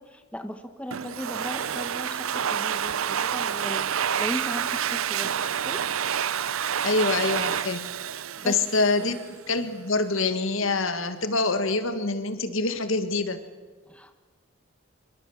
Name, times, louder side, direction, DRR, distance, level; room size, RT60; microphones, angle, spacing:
voice 1, 0.0-3.8 4.2-5.8 8.4-8.6 8.9-9.1 13.9-14.2, equal, 5° left, 8 dB, 1.1 m, -37 dB
Domestic sounds home sounds, 0.9-9.3, right 8 dB, 75° right, 0.6 m, -28 dB
voice 2, 6.8-7.9 8.4-13.4, left 3 dB, 70° left, 10 dB, 1.8 m, -25 dB
24.5 x 24.0 x 7.2 m, 1.4 s
head